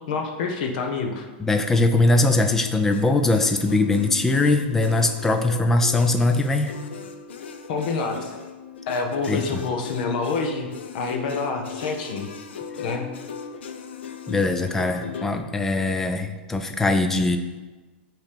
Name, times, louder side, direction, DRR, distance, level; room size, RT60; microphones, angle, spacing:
voice 1, 0.1-1.3 7.7-8.3 8.9-10.7 10.9-12.3 12.8-13.1, left 4 dB, 45° left, 4 dB, 0.9 m, -27 dB
voice 2, 1.4-6.7 9.3-9.6 14.3-17.4, left 2 dB, 5° left, 6 dB, 0.3 m, -21 dB
sound 1, 2.9-15.4, left 6 dB, 90° left, 0.7 m, -37 dB
8.5 x 3.1 x 5.1 m, 1.2 s
supercardioid pair, 170°, 6 cm